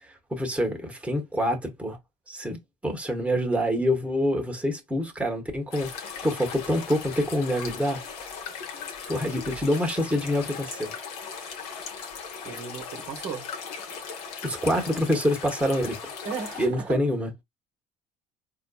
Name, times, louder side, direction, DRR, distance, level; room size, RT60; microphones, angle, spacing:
voice 1, 0.3-2.0 2.3-8.0 9.1-10.9 14.4-16.1 16.6-17.3, equal, 5° right, 1.1 m, -26 dB
sound 1, 5.7-16.7, left 6 dB, 75° left, 0.9 m, -38 dB
voice 2, 12.4-13.5 16.2-17.0, right 6 dB, 60° right, 1.1 m, -35 dB
4.2 x 2.7 x 2.3 m
hypercardioid pair, 60°, 20 cm